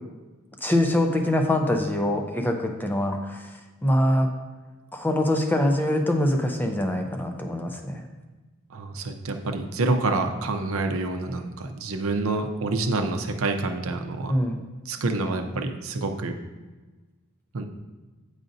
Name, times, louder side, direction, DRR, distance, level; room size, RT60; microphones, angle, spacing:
voice 1, 0.6-3.5 3.8-4.3 4.9-8.1 14.3-14.6, left 1 dB, 10° left, 3 dB, 0.5 m, -24 dB
voice 2, 8.7-14.4 14.9-16.3 17.5-17.7, right 3 dB, 70° right, 5 dB, 0.6 m, -27 dB
8.9 x 4.9 x 2.6 m, 1.3 s
head